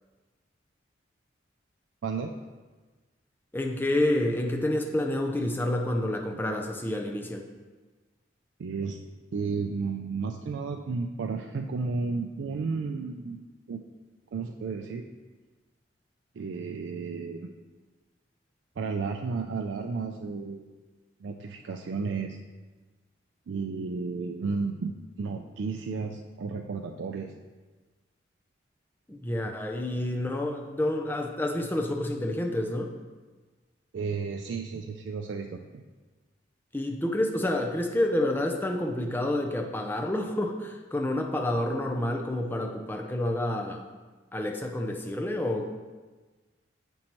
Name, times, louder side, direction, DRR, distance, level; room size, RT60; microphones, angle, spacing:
voice 1, 2.0-2.3 8.6-9.0 9.3-13.4 13.7-13.8 14.3-15.0 16.4-17.5 18.8-20.7 21.2-22.4 23.5-24.9 25.2-27.3 33.9-35.8, right 4 dB, 65° right, 3 dB, 0.3 m, -33 dB
voice 2, 3.5-7.4 29.1-32.9 36.7-43.9 44.3-45.8, left 1 dB, 10° left, 2 dB, 0.4 m, -29 dB
7.5 x 5.3 x 2.9 m, 1.3 s
head